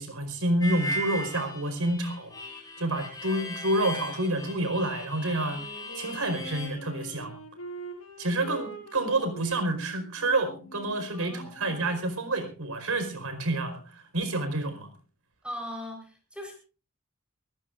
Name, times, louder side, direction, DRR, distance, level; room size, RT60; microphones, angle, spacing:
voice 1, 0.0-2.3 2.8-5.6 5.9-7.3 8.2-14.9, right 1 dB, 90° right, 8 dB, 4.8 m, -29 dB
Harmonica, 0.6-6.7, left 1 dB, 15° left, 4.9 m, -37 dB
Wind instrument woodwind instrument, 5.4-12.1, right 2 dB, 80° left, 6.1 m, -45 dB
voice 2, 11.1-11.8 15.4-16.5, equal, 5° right, 2 dB, 4.3 m, -39 dB
24.0 x 15.0 x 2.6 m, 0.35 s
head